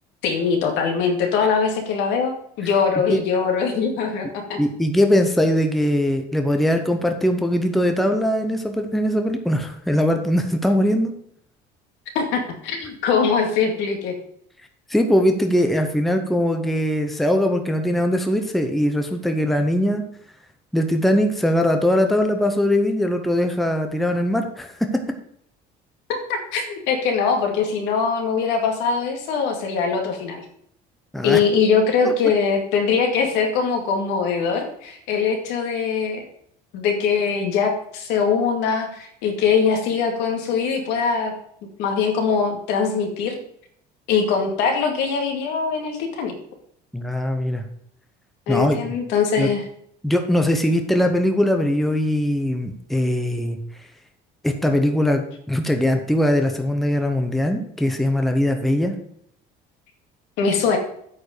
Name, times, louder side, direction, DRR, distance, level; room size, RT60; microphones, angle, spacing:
voice 1, 0.2-2.3 2.6-4.6 12.1-14.1 26.1-30.4 31.2-36.3 36.7-41.3 41.8-43.4 44.1-46.4 48.5-49.6 60.4-60.8, left 5 dB, 80° left, 3 dB, 2.2 m, -22 dB
voice 2, 4.6-11.1 14.9-20.0 20.7-24.7 31.1-31.4 32.0-32.1 46.9-47.6 48.5-48.9 49.4-49.5 50.0-53.6 54.4-58.9, left 1 dB, ahead, 5 dB, 0.7 m, -21 dB
8.6 x 5.2 x 6.5 m, 0.69 s
cardioid pair, 165°, 18 cm